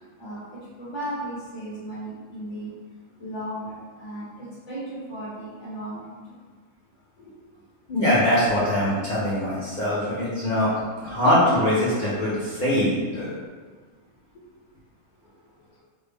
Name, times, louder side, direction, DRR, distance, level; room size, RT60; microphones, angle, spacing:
voice 1, 0.8-2.7 3.2-6.4, right 1 dB, 65° left, -9 dB, 1.2 m, -35 dB
voice 2, 7.9-10.7 11.0-13.3, left 1 dB, 45° left, -10 dB, 0.7 m, -22 dB
3.4 x 2.0 x 3.4 m, 1.5 s
omnidirectional pair, 1.4 m